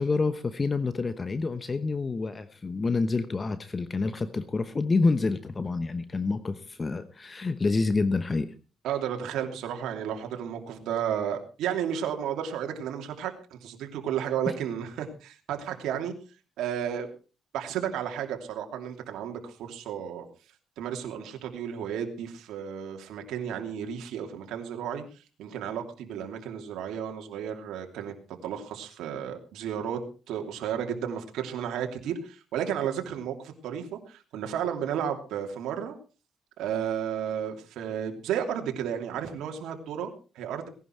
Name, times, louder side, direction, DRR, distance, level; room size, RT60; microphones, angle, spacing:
voice 1, 0.0-8.5 14.5-14.6, left 3 dB, 30° left, 12 dB, 1.0 m, -28 dB
voice 2, 8.8-16.1 16.6-17.1 17.5-20.3 20.8-28.1 28.4-30.0 30.3-35.9 36.6-40.7, right 9 dB, 85° right, 4 dB, 2.9 m, -33 dB
18.5 x 11.0 x 4.6 m, 0.36 s
cardioid pair, 90°, 0 cm